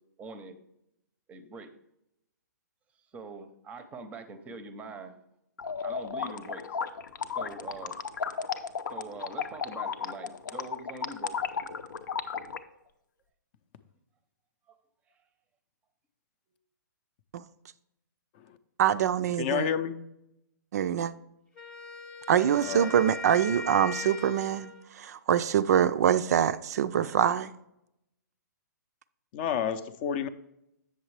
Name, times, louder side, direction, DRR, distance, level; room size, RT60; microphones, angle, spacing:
voice 1, 0.2-0.6 1.3-1.7 3.1-5.2 5.8-6.6 7.1-7.9 8.9-11.4 14.7-14.8, right 3 dB, 15° right, 0.6 m, -43 dB
sound 1, 5.6-12.6, left 6 dB, 80° left, 0.6 m, -34 dB
voice 2, 18.8-19.7 20.7-21.1 22.3-27.5, right 9 dB, 55° right, 0.4 m, -25 dB
voice 3, 19.4-20.0 22.6-22.9 29.3-30.3, left 8 dB, 35° left, 0.5 m, -30 dB
Wind instrument woodwind instrument, 21.5-24.9, left 4 dB, 10° left, 0.9 m, -40 dB
8.0 x 6.5 x 3.2 m
hypercardioid pair, 145°, 10 cm